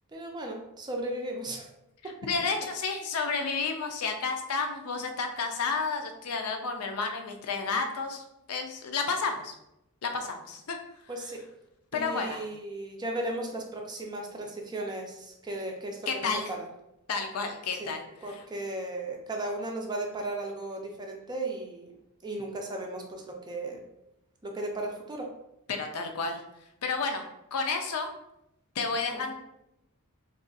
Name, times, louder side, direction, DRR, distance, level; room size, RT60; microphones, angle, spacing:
voice 1, 0.1-1.7 2.0-2.2 11.1-11.4 11.9-16.7 17.8-17.9 18.2-21.9 22.2-23.8 24.4-25.3 29.1-29.3, right 2 dB, 20° right, 1 dB, 0.4 m, -36 dB
voice 2, 2.3-8.2 8.5-9.5 10.0-10.8 11.9-12.5 16.1-16.5 17.1-18.0 18.3-18.4 25.7-26.4 26.8-27.3 27.5-28.1 28.8-29.3, left 4 dB, 75° left, 5 dB, 0.5 m, -31 dB
2.5 x 2.4 x 3.8 m, 0.85 s
head